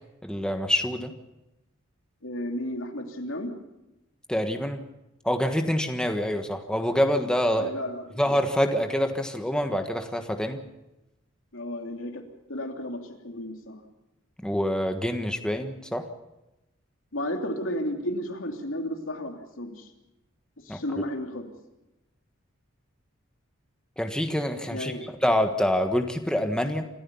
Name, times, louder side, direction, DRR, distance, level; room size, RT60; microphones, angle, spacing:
voice 1, 0.2-1.1 4.3-4.8 5.2-7.7 8.2-10.6 14.4-16.0 20.7-20.8 24.0-26.8, equal, 5° left, 5 dB, 1.4 m, -26 dB
voice 2, 2.2-3.6 7.5-8.2 11.5-12.2 12.5-13.8 17.1-19.9 20.6-21.5 24.7-25.0, left 1 dB, 80° left, 3 dB, 3.0 m, -33 dB
26.5 x 14.5 x 7.0 m, 0.94 s
head